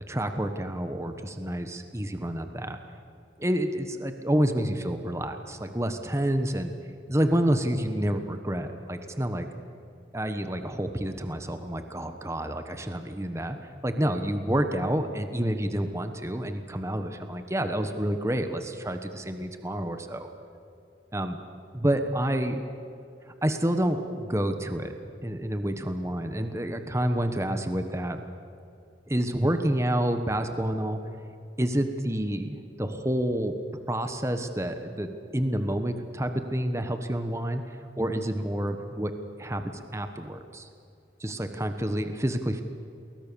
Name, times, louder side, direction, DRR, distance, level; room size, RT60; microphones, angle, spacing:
voice 1, 0.1-2.8 3.4-6.7 7.1-9.5 10.1-13.6 13.8-20.3 21.1-21.4 21.7-22.6 23.3-24.9 25.2-28.2 29.1-31.0 31.6-33.6 33.9-39.1 39.4-40.7 41.2-42.6, right 1 dB, 15° right, 7 dB, 1.2 m, -28 dB
29.0 x 21.5 x 7.0 m, 2.7 s
head